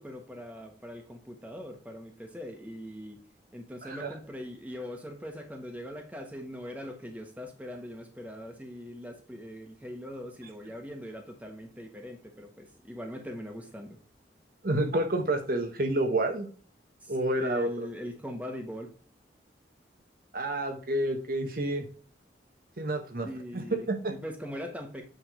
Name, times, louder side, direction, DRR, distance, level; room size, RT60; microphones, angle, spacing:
voice 1, 0.0-3.2 3.5-14.0 17.0-17.1 17.4-18.9 23.2-25.0, equal, 10° right, 3 dB, 1.3 m, -41 dB
voice 2, 3.8-4.1 14.6-16.5 17.1-17.9 20.3-21.9 22.8-23.3 23.5-24.1, right 1 dB, 55° right, 5 dB, 1.2 m, -29 dB
9.2 x 3.6 x 4.8 m, 0.41 s
head